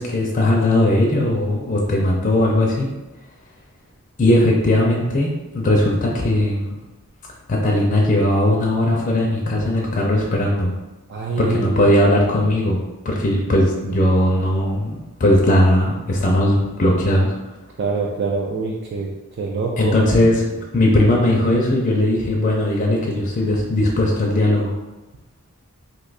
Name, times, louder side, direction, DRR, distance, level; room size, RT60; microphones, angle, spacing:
voice 1, 0.0-2.9 4.2-5.3 5.5-6.8 7.5-10.7 11.4-17.3 19.8-20.4 20.7-24.7, left 1 dB, 35° left, -2 dB, 0.5 m, -18 dB
voice 2, 11.1-12.0 17.8-20.0 20.5-20.6, right 4 dB, 50° right, -1 dB, 0.3 m, -25 dB
2.7 x 2.3 x 3.9 m, 1.0 s
head